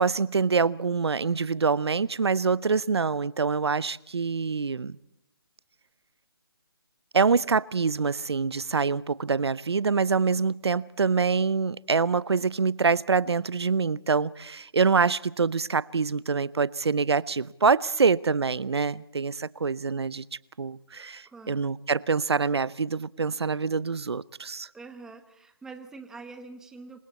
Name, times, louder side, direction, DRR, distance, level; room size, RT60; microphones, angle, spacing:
voice 1, 0.0-5.0 7.1-20.2 20.6-24.7, right 5 dB, 90° right, 21 dB, 0.7 m, -25 dB
voice 2, 21.2-21.6 24.7-27.0, right 4 dB, 5° right, 8 dB, 1.1 m, -44 dB
27.0 x 25.0 x 4.2 m, 0.81 s
hypercardioid pair, 160°, 13 cm